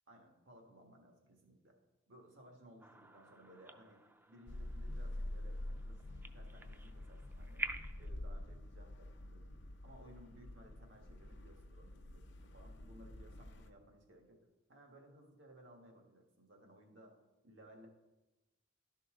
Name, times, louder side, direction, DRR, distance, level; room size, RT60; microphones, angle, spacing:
voice 1, 0.1-1.8 2.1-7.7 8.0-9.6 9.8-14.4 14.7-17.1 17.4-17.9, right 1 dB, 75° right, 2 dB, 1.7 m, -60 dB
sound 1, 2.8-8.1, right 2 dB, 10° right, 0.4 m, -49 dB
sound 2, 4.5-13.7, left 1 dB, 65° left, 0.7 m, -47 dB
12.5 x 5.6 x 3.8 m, 1.0 s
head